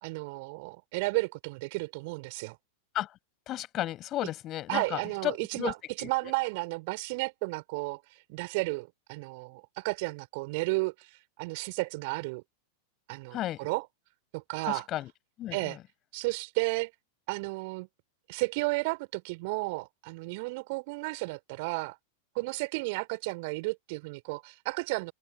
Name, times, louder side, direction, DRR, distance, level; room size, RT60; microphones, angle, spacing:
voice 1, 0.0-2.6 4.7-8.0 8.3-11.1 11.4-12.4 13.1-13.9 14.3-14.9 15.5-15.8 16.1-16.9 17.3-17.9 18.3-22.0 22.3-25.1, right 26 dB, 50° right, 4.2 m, -33 dB
voice 2, 3.5-5.7 6.0-6.3 13.3-13.7 14.7-15.1 15.4-15.8, left 14 dB, 35° left, 7.8 m, -34 dB
open air
figure-of-eight pair, 90°, 0 cm